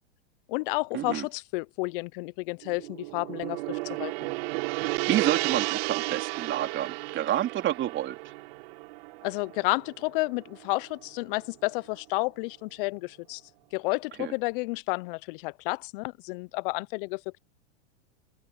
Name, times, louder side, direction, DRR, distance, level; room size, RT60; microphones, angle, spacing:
voice 1, 0.5-4.3 9.2-13.4 13.7-17.4, left 25 dB, 50° left, 0.8 m, -31 dB
Gong, 2.6-11.0, right 26 dB, 60° right, 4.2 m, -33 dB
voice 2, 4.8-8.1 14.2-14.3, right 12 dB, 35° right, 4.2 m, -29 dB
hypercardioid pair, 105°, 34 cm